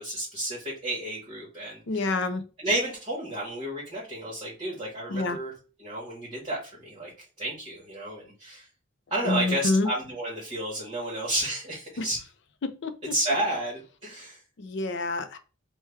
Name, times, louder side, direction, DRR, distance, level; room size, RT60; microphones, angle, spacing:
voice 1, 0.0-2.1 2.6-5.5 5.8-7.1 7.4-8.7 9.1-12.2 13.0-14.4, right 1 dB, 30° right, 1.3 m, -31 dB
voice 2, 1.9-2.4 5.1-5.4 9.2-9.9 12.0-12.1 12.6-13.0 14.6-15.4, left 3 dB, 60° left, 0.5 m, -27 dB
3.2 x 2.2 x 3.3 m
head